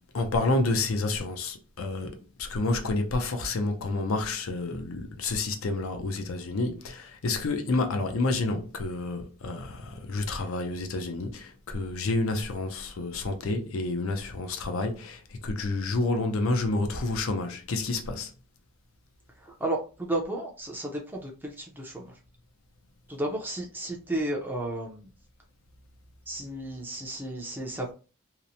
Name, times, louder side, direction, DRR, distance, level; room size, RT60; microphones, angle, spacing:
voice 1, 0.1-18.3, left 2 dB, 75° left, 0.5 m, -29 dB
voice 2, 19.4-22.2 23.1-25.1 26.3-27.9, right 1 dB, 10° right, 0.4 m, -33 dB
2.8 x 2.0 x 2.6 m
head